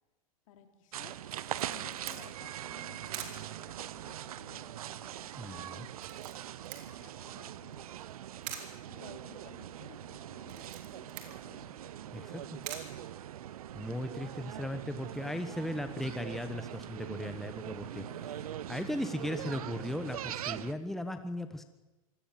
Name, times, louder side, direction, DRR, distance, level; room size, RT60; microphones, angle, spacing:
voice 1, 0.5-1.3 1.6-5.7 6.8-7.8 8.8-12.9 17.9-18.6, left 8 dB, 65° left, 6 dB, 3.3 m, -56 dB
sound 1, 0.9-20.7, right 12 dB, 75° right, 0.9 m, -42 dB
Camera, 1.3-13.8, right 10 dB, 55° right, 3.5 m, -49 dB
voice 2, 5.4-5.9 12.1-12.4 13.7-18.0 18.7-21.6, left 1 dB, ahead, 8 dB, 1.1 m, -37 dB
24.5 x 17.5 x 7.5 m, 1.1 s
hypercardioid pair, 115°, 19 cm